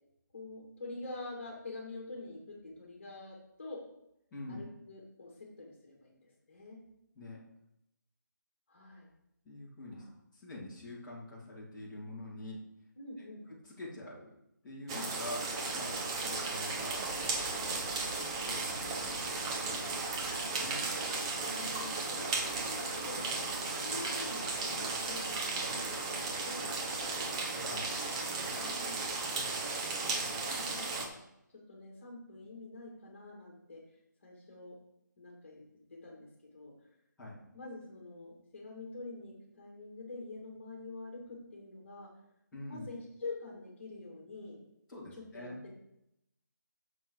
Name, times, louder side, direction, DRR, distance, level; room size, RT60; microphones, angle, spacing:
voice 1, 0.3-3.8 4.5-6.8 8.7-9.1 9.9-10.1 13.0-13.5 14.9-15.1 21.5-23.2 23.7-27.2 28.6-29.0 30.0-31.2 31.7-33.8 34.2-34.7 35.2-35.6 35.9-36.7 37.5-42.1 42.7-44.6 45.1-45.7, left 2 dB, 40° left, -1 dB, 2.7 m, -46 dB
voice 2, 4.3-4.6 7.1-7.4 9.4-10.0 10.3-12.6 13.5-14.3 14.6-15.4 15.7-18.1 18.4-20.8 27.6-27.9 37.2-37.4 42.5-42.9 44.9-45.6, left 1 dB, 5° left, -12 dB, 2.7 m, -46 dB
sound 1, 14.9-31.1, right 3 dB, 15° right, 0.9 m, -35 dB
9.0 x 6.7 x 5.0 m, 0.83 s
figure-of-eight pair, 160°, 10 cm